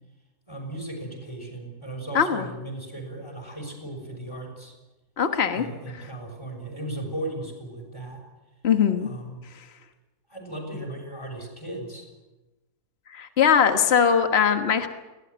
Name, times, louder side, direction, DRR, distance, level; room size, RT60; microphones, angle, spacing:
voice 1, 0.5-4.7 5.5-8.2 9.0-9.4 10.3-12.1, right 1 dB, 15° left, 2 dB, 6.4 m, -36 dB
voice 2, 2.1-2.5 5.2-5.6 8.6-9.1 13.1-14.9, left 7 dB, 40° left, 8 dB, 1.6 m, -21 dB
22.5 x 17.5 x 9.6 m, 1.1 s
omnidirectional pair, 1.7 m